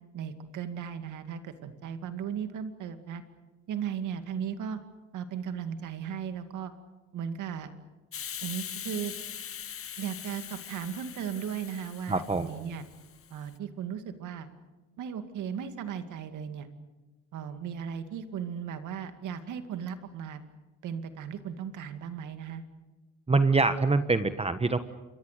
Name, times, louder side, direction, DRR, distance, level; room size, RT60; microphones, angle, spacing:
voice 1, 0.1-3.2 3.7-4.8 5.1-6.7 7.1-7.7 8.4-9.1 10.0-12.8 13.3-14.5 15.0-16.7 17.3-20.4 20.8-22.6, right 8 dB, 80° right, 8 dB, 2.3 m, -36 dB
Hiss, 8.1-13.5, left 9 dB, 45° left, 1.0 m, -42 dB
voice 2, 12.1-12.5 23.3-24.8, right 3 dB, 20° right, 10 dB, 1.2 m, -24 dB
28.5 x 23.5 x 6.7 m, 1.2 s
cardioid pair, 90°, 30 cm